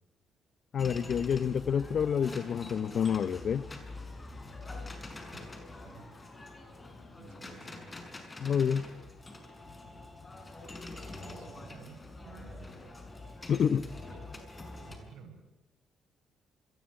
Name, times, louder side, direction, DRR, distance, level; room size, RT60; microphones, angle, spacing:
voice 1, 0.7-3.7 8.4-8.9 13.5-13.8, left 7 dB, 55° left, 1.2 m, -28 dB
sound 1, 0.8-15.0, left 2 dB, 20° left, 6.7 m, -45 dB
voice 2, 5.3-6.1 7.2-8.4 11.2-12.8 14.1-14.3 14.9-15.4, right 5 dB, 85° right, 7.9 m, -53 dB
27.5 x 22.5 x 8.6 m
cardioid pair, 100°, 0 cm